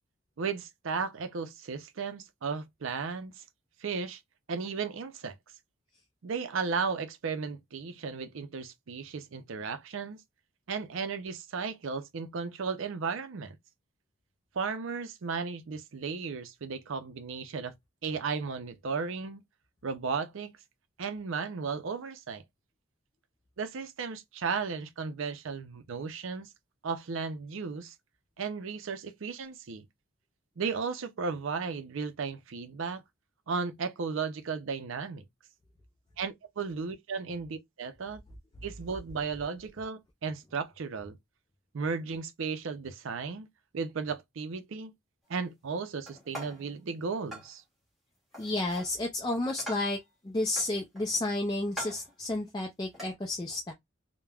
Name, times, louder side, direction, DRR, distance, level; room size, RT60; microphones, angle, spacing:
voice 1, 0.4-3.4 3.8-4.2 4.5-5.3 6.2-10.2 10.7-13.6 14.5-17.7 18.0-19.4 19.8-20.5 21.0-22.4 23.6-26.5 26.8-27.9 28.4-29.8 30.6-33.0 33.5-35.2 36.2-38.2 38.6-41.2 41.7-43.5 43.7-44.9 45.3-47.6, right 5 dB, 65° right, 0.5 m, -35 dB
sound 1, 46.1-46.7 47.3-47.5 48.3-48.9 49.3-50.0 50.6-51.2 51.7-52.1 52.9-53.1, equal, ahead, 1.4 m, -43 dB
voice 2, 48.4-50.0 50.2-53.7, left 2 dB, 20° left, 0.4 m, -31 dB
3.3 x 2.1 x 2.3 m
head